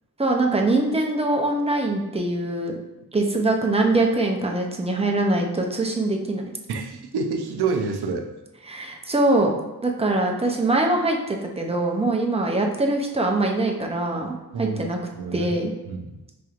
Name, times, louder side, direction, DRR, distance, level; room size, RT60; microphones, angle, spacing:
voice 1, 0.2-2.8 3.1-6.4 8.7-9.5 9.8-15.0 15.3-15.7, right 2 dB, 15° right, 1 dB, 0.5 m, -23 dB
voice 2, 6.7-8.3 14.5-14.8 15.1-15.5 15.9-16.1, right 4 dB, 80° right, 5 dB, 0.6 m, -27 dB
5.1 x 3.0 x 2.4 m, 1.0 s
wide cardioid pair, 130°, 38 cm